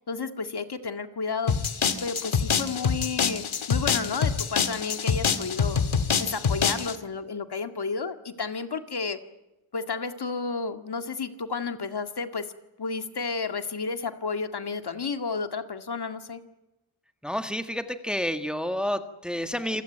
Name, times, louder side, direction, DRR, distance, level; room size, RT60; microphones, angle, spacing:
voice 1, 0.1-1.6 2.0-5.8 6.2-9.2 9.7-12.5 12.8-16.4, left 4 dB, 50° left, 8 dB, 2.0 m, -32 dB
sound 1, 1.5-7.0, left 6 dB, 75° left, 2.1 m, -26 dB
voice 2, 17.2-19.8, left 1 dB, ahead, 8 dB, 1.7 m, -29 dB
27.5 x 16.5 x 9.2 m, 0.98 s
wide cardioid pair, 90°, 48 cm